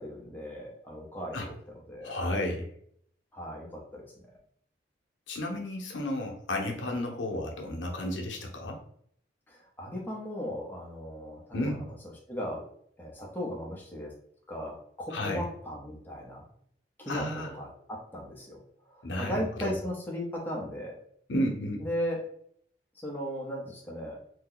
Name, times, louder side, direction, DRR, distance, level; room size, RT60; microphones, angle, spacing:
voice 1, 0.0-1.5 1.9-2.2 3.3-4.1 9.5-11.8 12.3-12.6 13.0-14.1 14.5-16.5 17.0-17.3 17.5-18.6 18.9-20.9 21.8-22.2 23.0-24.2, equal, 10° left, -2 dB, 0.7 m, -37 dB
voice 2, 2.0-2.7 5.3-8.8 11.5-11.9 15.1-15.4 17.1-17.5 19.0-19.7 21.3-21.9, left 1 dB, 90° left, 1 dB, 0.7 m, -32 dB
2.7 x 2.2 x 3.8 m, 0.65 s
head